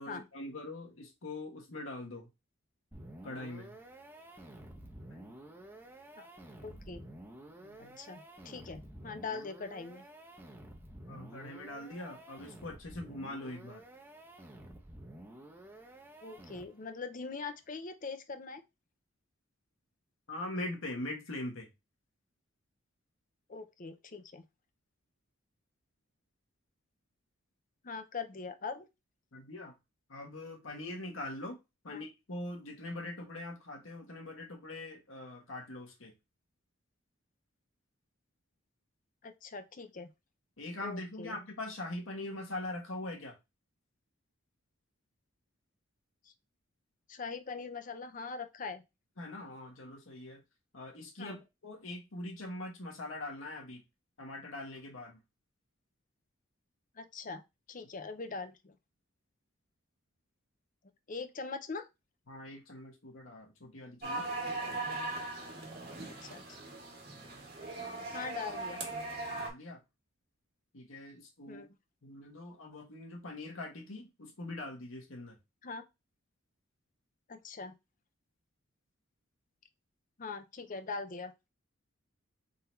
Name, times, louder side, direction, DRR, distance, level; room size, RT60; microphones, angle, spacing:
voice 1, 0.0-2.3 3.2-3.7 5.1-5.3 6.7-6.8 7.6-8.0 11.1-13.8 20.3-21.7 29.3-29.7 30.1-31.6 31.8-36.1 40.6-43.4 49.2-50.4 50.7-53.8 54.2-55.2 62.3-64.3 69.4-69.8 70.7-71.6 72.0-75.4, left 1 dB, 70° left, 1.3 m, -42 dB
sound 1, 2.9-17.0, right 1 dB, 10° right, 0.7 m, -51 dB
voice 2, 6.6-7.0 7.8-10.0 16.2-18.6 23.5-24.4 27.8-28.9 31.9-32.0 39.2-40.1 40.8-41.4 47.1-48.8 51.2-51.4 57.0-57.4 57.7-58.8 61.1-61.9 66.2-66.4 68.1-68.8 71.5-71.7 75.6-75.8 77.3-77.7 80.2-81.3, left 4 dB, 40° left, 0.6 m, -42 dB
sound 2, 64.0-69.5, right 2 dB, 45° right, 1.6 m, -39 dB
3.9 x 2.7 x 4.3 m
head